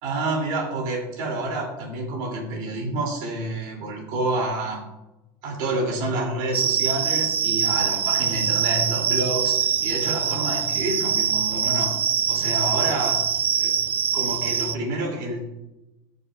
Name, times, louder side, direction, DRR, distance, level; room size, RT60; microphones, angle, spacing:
voice 1, 0.0-4.8 5.4-11.9 12.3-13.2 13.6-13.7 14.1-15.4, right 2 dB, 50° right, -1 dB, 2.9 m, -28 dB
sound 1, 6.5-14.8, right 8 dB, 20° right, 0.4 m, -23 dB
18.5 x 6.9 x 2.5 m, 0.97 s
supercardioid pair, 160°, 10 cm